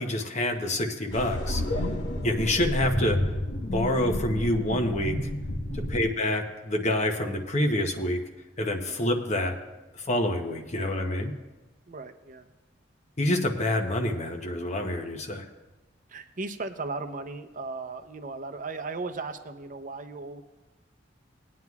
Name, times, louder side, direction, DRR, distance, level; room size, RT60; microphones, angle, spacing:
voice 1, 0.0-1.8 2.2-3.3 3.6-5.3 5.9-8.3 8.6-9.6 10.0-11.3 13.2-15.4, left 1 dB, 40° left, 4 dB, 0.9 m, -27 dB
sound 1, 1.1-6.1, left 1 dB, 80° left, 1.2 m, -30 dB
voice 2, 11.9-12.5 16.1-20.4, right 3 dB, 45° right, 7 dB, 0.7 m, -37 dB
20.0 x 9.3 x 2.4 m, 1.1 s
head